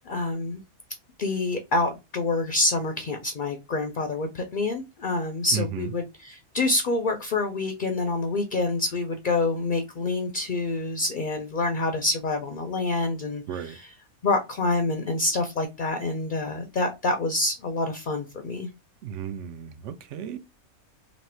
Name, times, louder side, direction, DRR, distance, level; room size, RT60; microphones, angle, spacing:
voice 1, 0.1-0.6 1.2-13.9 14.2-18.7, left 2 dB, 55° left, 0.5 m, -27 dB
voice 2, 5.5-5.9 13.5-13.8 19.0-20.4, right 7 dB, 65° right, 0.9 m, -34 dB
3.1 x 2.7 x 4.3 m
omnidirectional pair, 1.5 m